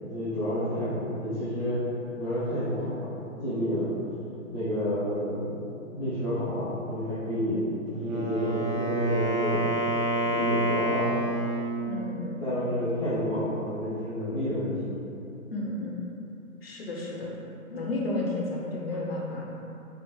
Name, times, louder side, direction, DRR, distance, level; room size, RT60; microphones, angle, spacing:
voice 1, 0.0-1.8 2.2-3.9 4.5-5.5 5.9-9.7 10.2-11.1 12.4-14.7, equal, 25° right, -16 dB, 0.6 m, -29 dB
Wind instrument woodwind instrument, 7.9-11.8, right 1 dB, 75° right, 0.7 m, -28 dB
voice 2, 11.9-12.7 15.5-16.0 16.6-17.3 17.7-19.4, left 2 dB, 45° left, -3 dB, 0.6 m, -32 dB
3.7 x 2.1 x 2.9 m, 2.8 s
hypercardioid pair, 180°, 41 cm